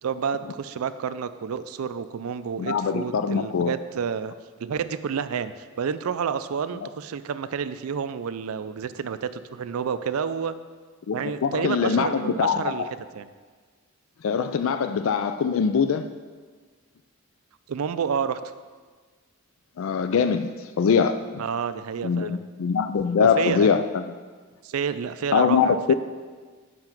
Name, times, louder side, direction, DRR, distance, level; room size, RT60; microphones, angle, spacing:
voice 1, 0.0-4.3 4.6-10.5 11.1-12.8 13.2-13.3 17.7-18.4 21.4-22.4 23.4-23.7 24.6-25.9, right 6 dB, 85° right, 12 dB, 0.4 m, -29 dB
voice 2, 2.6-3.7 11.1-11.2 11.4-12.7 14.2-16.1 19.8-21.4 22.0-24.1 25.3-25.9, left 6 dB, 70° left, 9 dB, 0.4 m, -23 dB
7.7 x 5.8 x 5.9 m, 1.5 s
head